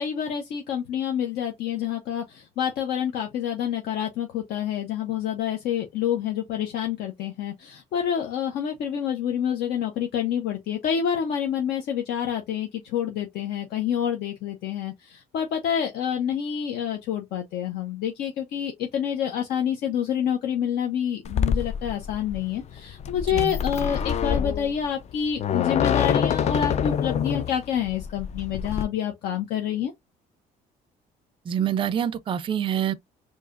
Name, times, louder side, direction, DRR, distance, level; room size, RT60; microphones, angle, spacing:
voice 1, 0.0-29.9, left 9 dB, 70° left, 0.8 m, -28 dB
sound 1, 21.2-28.8, left 8 dB, 40° left, 0.4 m, -26 dB
voice 2, 31.5-32.9, right 9 dB, 30° right, 0.4 m, -26 dB
4.7 x 2.7 x 2.5 m
cardioid pair, 110°, 17 cm